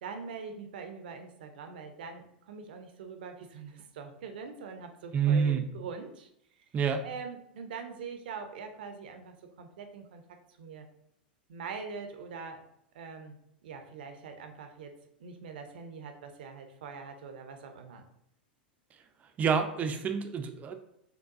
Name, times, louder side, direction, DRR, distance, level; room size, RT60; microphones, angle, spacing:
voice 1, 0.0-6.6 7.0-10.9 11.5-12.6 12.9-14.9 15.2-18.0, right 5 dB, 65° right, 5 dB, 0.6 m, -43 dB
voice 2, 5.1-5.6 6.7-7.0 19.4-20.7, right 6 dB, 30° right, 6 dB, 0.5 m, -27 dB
6.6 x 2.2 x 2.5 m, 0.76 s
hypercardioid pair, 95°, 5 cm